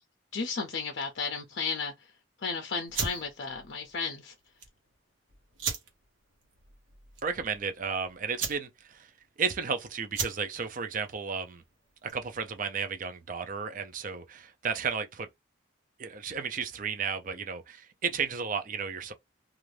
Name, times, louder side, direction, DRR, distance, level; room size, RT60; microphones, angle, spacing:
voice 1, 0.3-1.9 2.4-4.3, left 5 dB, 60° left, 0.5 m, -33 dB
sound 1, 2.9-12.4, right 5 dB, 80° right, 1.0 m, -39 dB
voice 2, 7.2-9.1 9.4-11.6 12.0-15.3 16.0-19.1, right 6 dB, 45° right, 0.5 m, -33 dB
2.5 x 2.4 x 3.2 m
head